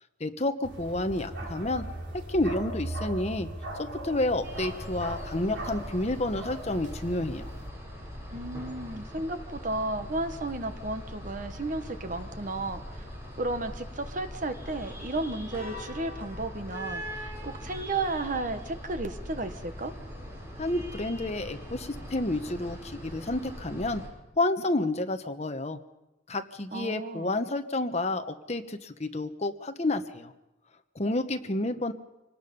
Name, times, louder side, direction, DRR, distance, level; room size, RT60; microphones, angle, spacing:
voice 1, 0.2-1.8 2.1-3.5 3.8-7.5 20.6-24.0 24.4-25.8 26.3-30.3 30.9-31.9, left 2 dB, 35° left, 8 dB, 1.1 m, -30 dB
Bark, 0.6-7.7, right 1 dB, 75° right, 4.8 m, -39 dB
sound 1, 4.4-24.1, equal, 15° right, 7.1 m, -41 dB
voice 2, 8.3-13.1 13.4-19.9 26.7-27.3, right 2 dB, 45° right, 8 dB, 1.2 m, -33 dB
25.5 x 19.0 x 5.4 m, 0.98 s
head